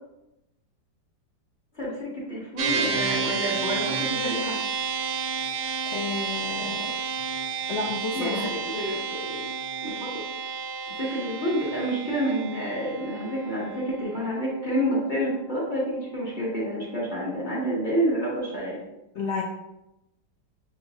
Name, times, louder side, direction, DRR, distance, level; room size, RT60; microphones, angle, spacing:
voice 1, 1.7-4.6 8.1-9.4 9.8-10.1 10.9-18.8, right 1 dB, 30° left, -7 dB, 1.1 m, -29 dB
sound 1, 2.6-16.1, right 5 dB, 70° right, 0.8 m, -31 dB
voice 2, 5.9-6.9 7.7-8.5 8.9-9.1 19.1-19.4, left 4 dB, 80° left, -1 dB, 0.6 m, -31 dB
6.5 x 2.9 x 2.7 m, 0.89 s
omnidirectional pair, 1.9 m